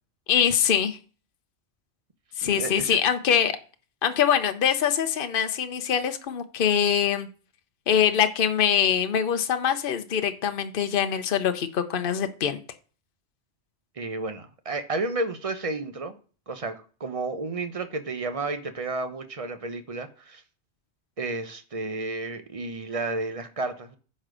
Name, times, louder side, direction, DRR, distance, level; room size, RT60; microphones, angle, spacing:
voice 1, 0.3-1.0 2.4-3.6 4.0-7.3 7.9-12.6, left 8 dB, 55° left, 1.0 m, -23 dB
voice 2, 2.4-3.0 14.0-16.1 16.5-20.4 21.2-24.0, right 3 dB, 35° right, 0.9 m, -32 dB
10.0 x 4.3 x 6.2 m
omnidirectional pair, 1.2 m